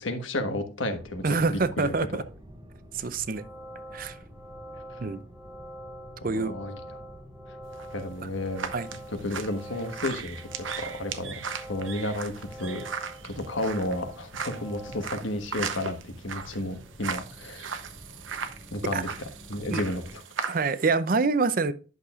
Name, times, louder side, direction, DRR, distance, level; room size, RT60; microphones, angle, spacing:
voice 1, 0.0-1.9 6.2-6.8 7.9-10.4 10.8-12.8 13.2-17.8 18.7-20.2, left 1 dB, 90° left, 1.4 m, -32 dB
sound 1, 1.0-20.2, equal, 25° right, 1.5 m, -49 dB
voice 2, 1.2-2.2 2.9-3.5 3.9-4.2 5.0-5.2 6.2-6.5 8.7-8.9 18.9-19.0 19.7-19.8 20.5-21.7, right 4 dB, 45° right, 0.6 m, -26 dB
sound 2, 3.2-15.0, right 1 dB, ahead, 1.2 m, -45 dB
sound 3, 7.7-20.9, right 6 dB, 85° right, 0.8 m, -38 dB
11.0 x 6.6 x 2.4 m
head